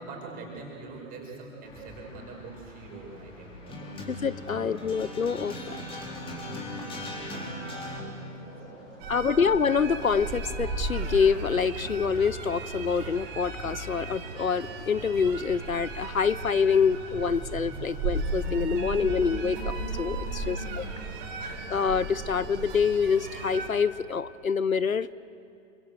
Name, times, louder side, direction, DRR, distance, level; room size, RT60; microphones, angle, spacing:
voice 1, 0.0-4.0 4.4-4.9 5.7-8.1 8.4-9.4 20.3-21.8, right 3 dB, 20° right, 0 dB, 6.0 m, -45 dB
sound 1, 1.6-8.0, left 1 dB, 15° left, 4.0 m, -39 dB
voice 2, 4.1-5.8 9.1-20.9 21.7-25.1, left 6 dB, 85° left, 19 dB, 0.7 m, -26 dB
sound 2, 6.9-15.2, left 1 dB, 30° left, 7.2 m, -52 dB
sound 3, 9.0-23.7, right 3 dB, 40° right, 4.5 m, -35 dB
28.0 x 25.5 x 7.9 m, 2.6 s
figure-of-eight pair, 115°, 40 cm